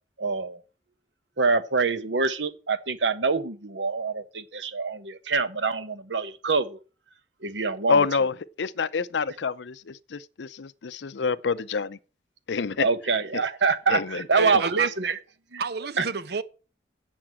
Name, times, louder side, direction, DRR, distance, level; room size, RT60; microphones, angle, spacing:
voice 1, 0.2-0.6 1.4-6.8 7.4-7.9 12.8-15.2 15.5-15.6 16.0-16.1, right 4 dB, 90° right, 1.1 m, -25 dB
voice 2, 7.9-12.0 12.5-12.9 13.3-13.4 13.9-14.6, left 5 dB, 75° left, 0.6 m, -27 dB
voice 3, 14.4-14.9 15.6-16.4, right 5 dB, 65° right, 0.9 m, -30 dB
7.8 x 7.4 x 7.6 m
head